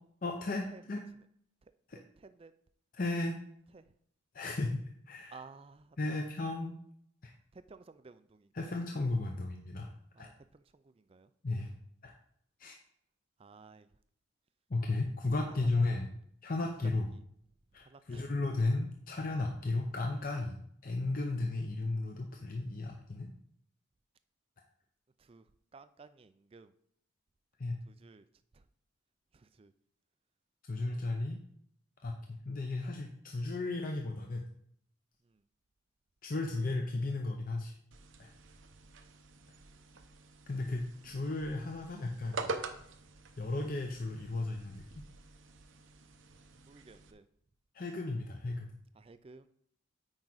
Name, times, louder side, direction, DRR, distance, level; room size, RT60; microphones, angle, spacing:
voice 1, 0.2-1.0 1.9-2.0 2.9-3.4 4.3-4.8 5.1-5.4 6.0-6.7 7.2-7.3 8.5-9.9 10.2-10.3 11.4-11.7 12.0-12.1 12.6-12.7 14.7-16.1 16.4-17.1 17.7-23.3 27.6-27.8 30.7-31.4 32.0-34.5 36.2-37.7 38.2-38.3 40.5-42.5 43.4-44.8 47.7-48.7, left 2 dB, 45° left, 2 dB, 0.6 m, -34 dB
voice 2, 2.0-2.5 3.7-3.8 5.3-6.2 7.5-8.7 10.1-11.3 13.4-13.9 15.5-15.6 17.9-18.2 25.2-25.4 25.7-26.7 27.9-28.3 28.5-28.6 29.3-29.7 30.8-31.3 46.6-47.2 49.0-49.5, right 4 dB, 25° right, 12 dB, 0.3 m, -55 dB
sound 1, 37.9-47.1, right 3 dB, 70° right, 0.7 m, -46 dB
8.9 x 4.8 x 4.0 m, 0.68 s
head